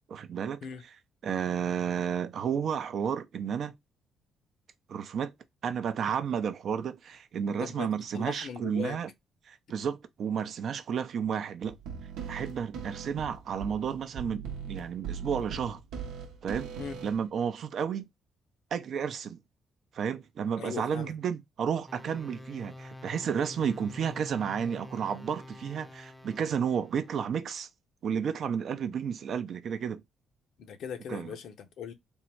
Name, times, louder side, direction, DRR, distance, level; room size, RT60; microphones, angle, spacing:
voice 1, 0.1-0.6 1.2-3.7 4.9-5.3 5.6-9.1 9.5-11.8 12.3-15.8 16.4-16.7 17.0-18.1 18.7-19.4 19.9-27.7 28.0-30.0 31.1-31.4, right 7 dB, 60° right, 0.5 m, -32 dB
voice 2, 7.6-9.0 16.8-17.0 20.6-21.1 30.6-31.9, left 7 dB, 75° left, 0.7 m, -39 dB
sound 1, 11.6-17.3, right 6 dB, 90° right, 0.8 m, -40 dB
sound 2, 21.9-27.1, left 2 dB, 5° left, 0.6 m, -47 dB
3.6 x 2.1 x 4.3 m
cardioid pair, 90°, 0 cm